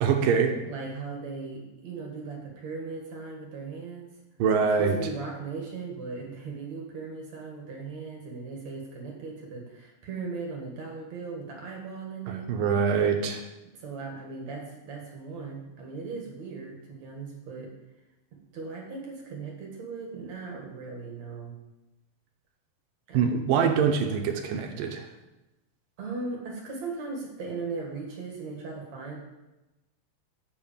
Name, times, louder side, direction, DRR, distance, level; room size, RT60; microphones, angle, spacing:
voice 1, 0.0-0.6 4.4-5.0 12.3-13.4 23.1-25.1, right 6 dB, 70° right, 4 dB, 2.3 m, -24 dB
voice 2, 0.6-4.1 4.8-12.4 13.7-17.7 18.5-21.5 23.1-23.3 26.0-29.2, right 4 dB, 55° right, 0 dB, 2.5 m, -38 dB
8.4 x 7.4 x 7.3 m, 1.0 s
omnidirectional pair, 4.6 m